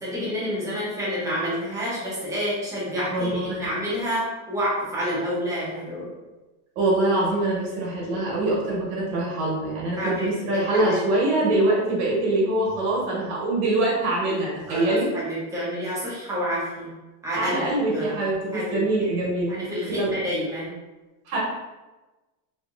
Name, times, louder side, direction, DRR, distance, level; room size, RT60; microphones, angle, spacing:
voice 1, 0.0-6.1 10.0-11.0 14.7-16.9 17.2-18.2 18.5-19.2 19.5-20.7, equal, 5° right, -9 dB, 0.5 m, -29 dB
voice 2, 3.1-3.7 6.7-15.1 17.3-19.6 19.9-20.3 21.3-21.4, right 2 dB, 60° right, -4 dB, 1.1 m, -24 dB
3.0 x 2.5 x 2.3 m, 1.1 s
supercardioid pair, 170°, 46 cm